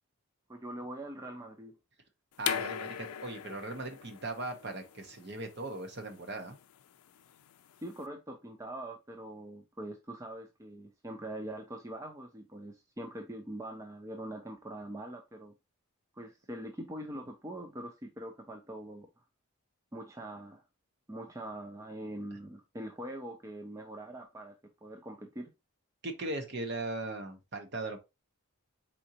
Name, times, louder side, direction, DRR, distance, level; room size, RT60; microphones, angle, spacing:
voice 1, 0.5-1.8 7.8-15.5 16.1-19.1 19.9-20.6 21.1-24.5 24.8-25.5, right 1 dB, 15° right, 0.4 m, -43 dB
sound 1, 2.4-8.0, left 10 dB, 80° left, 0.4 m, -40 dB
voice 2, 2.4-6.6 26.0-28.0, right 2 dB, 50° right, 0.9 m, -38 dB
4.3 x 3.8 x 2.8 m
head